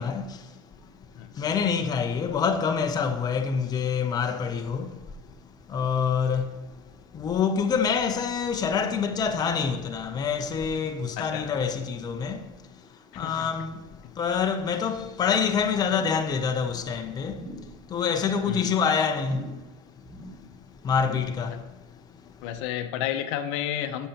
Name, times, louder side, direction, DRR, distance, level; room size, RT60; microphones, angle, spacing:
voice 1, 0.0-5.2 5.7-22.5, left 6 dB, 25° left, 0.7 m, -27 dB
voice 2, 11.2-11.5 13.1-13.5 18.5-18.7 22.4-24.1, left 11 dB, 60° left, 0.7 m, -31 dB
sound 1, 15.8-16.3 16.6-16.9 17.3-17.8 18.1-18.6 19.2-19.7 20.0-20.5 20.9-21.4 21.8-21.9, equal, 5° right, 1.0 m, -43 dB
11.0 x 6.6 x 2.9 m
supercardioid pair, 115°, 17 cm